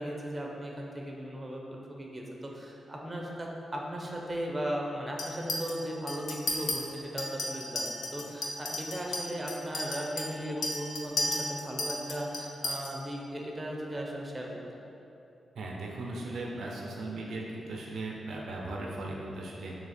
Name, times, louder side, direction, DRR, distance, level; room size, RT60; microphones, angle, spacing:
voice 1, 0.0-14.5, equal, 25° right, -1 dB, 0.5 m, -37 dB
Chink clink, 5.2-5.7 6.1-6.8 7.2-12.9, left 2 dB, 75° left, 0.4 m, -34 dB
voice 2, 15.6-19.8, right 2 dB, 80° right, -2 dB, 0.4 m, -37 dB
2.8 x 2.4 x 4.1 m, 2.9 s
cardioid pair, 70°, 0 cm